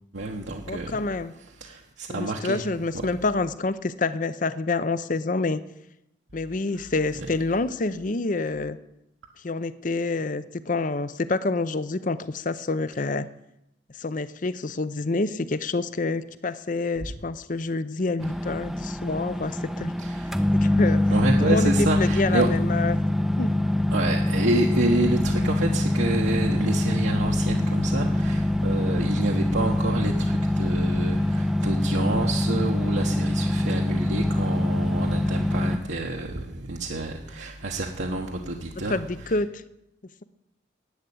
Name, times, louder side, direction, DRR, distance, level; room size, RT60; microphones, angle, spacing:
voice 1, 0.1-1.0 1.6-2.6 6.7-6.9 20.0-20.3 21.1-22.5 23.9-39.0, right 2 dB, 75° right, -1 dB, 1.2 m, -28 dB
voice 2, 0.7-1.3 2.1-5.6 6.3-8.8 9.4-13.3 14.0-19.9 20.6-21.0 21.4-23.0 23.4-23.6 38.9-39.5, left 3 dB, 45° left, 15 dB, 0.6 m, -27 dB
sound 1, 18.2-35.8, left 1 dB, ahead, 0.5 m, -24 dB
11.5 x 8.9 x 8.4 m, 0.85 s
head